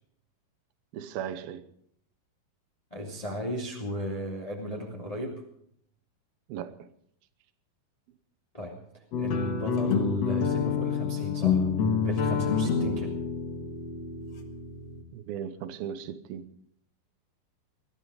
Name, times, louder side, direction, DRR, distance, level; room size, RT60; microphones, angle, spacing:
voice 1, 0.9-1.7 6.5-6.9 15.1-16.5, right 9 dB, 80° right, 2.8 m, -37 dB
voice 2, 2.9-5.4 8.5-8.8 9.2-11.7 12.0-13.2, equal, 10° left, 2.1 m, -34 dB
sound 1, 9.1-15.0, left 6 dB, 55° left, 2.3 m, -28 dB
20.5 x 13.0 x 5.0 m
omnidirectional pair, 4.2 m